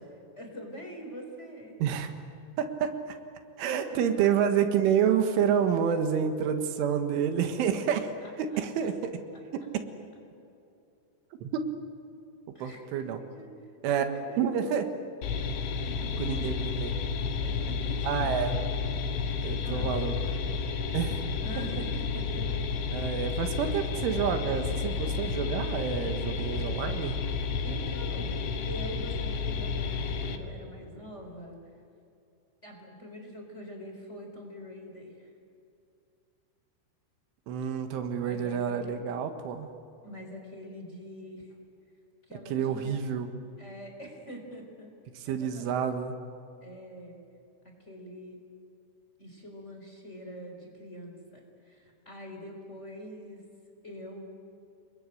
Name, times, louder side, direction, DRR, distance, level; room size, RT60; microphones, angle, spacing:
voice 1, 0.4-1.8 3.9-4.7 7.8-8.9 12.5-12.8 13.2-13.5 14.0-14.9 15.7-16.5 17.4-18.4 19.6-19.9 21.4-22.6 27.6-28.4 28.7-31.6 32.6-35.3 38.2-39.0 40.0-41.5 42.3-43.0 43.6-44.9 45.3-45.8 46.6-47.2 47.6-48.4 49.2-53.4 53.8-54.2, equal, 15° left, 2 dB, 3.9 m, -44 dB
voice 2, 1.8-2.1 2.6-3.2 3.6-8.1 8.4-9.2 11.4-11.8 12.6-13.2 13.8-14.9 16.2-16.9 18.0-18.6 19.4-20.2 20.9-21.2 22.9-27.2 37.5-39.7 42.5-43.3 45.2-46.2, right 8 dB, 85° right, 7 dB, 4.1 m, -28 dB
sound 1, 15.2-30.4, left 5 dB, 80° left, 4.2 m, -31 dB
29.5 x 21.5 x 9.2 m, 2.7 s
omnidirectional pair, 5.5 m